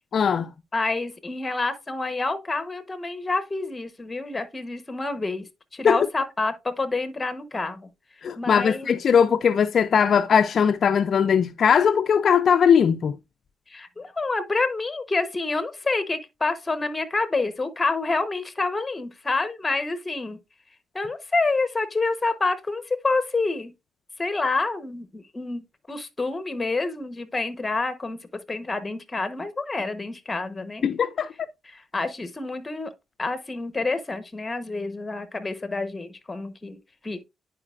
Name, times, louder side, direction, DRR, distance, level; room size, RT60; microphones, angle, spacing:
voice 1, 0.1-0.5 5.8-6.0 8.2-13.2 30.8-31.3, left 7 dB, 55° left, 0.3 m, -20 dB
voice 2, 0.7-7.9 8.4-8.9 13.7-20.4 20.9-23.7 24.2-30.9 31.6-32.9 33.2-37.2, left 3 dB, 20° left, 0.9 m, -28 dB
9.7 x 4.8 x 2.4 m
cardioid pair, 90°, 0 cm